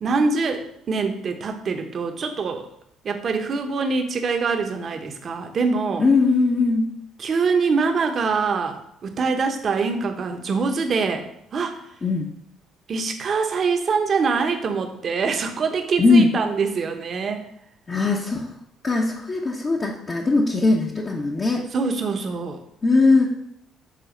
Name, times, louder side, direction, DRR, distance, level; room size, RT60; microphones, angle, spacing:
voice 1, 0.0-2.7 3.0-6.0 7.2-11.3 11.5-11.8 12.9-17.4 21.7-22.6, right 4 dB, 50° right, 6 dB, 1.0 m, -24 dB
voice 2, 6.0-6.9 12.0-12.3 16.0-16.3 17.9-18.5 18.8-21.6 22.8-23.3, left 3 dB, 35° left, -2 dB, 0.9 m, -19 dB
6.8 x 3.9 x 5.1 m, 0.75 s
supercardioid pair, 80°, 0 cm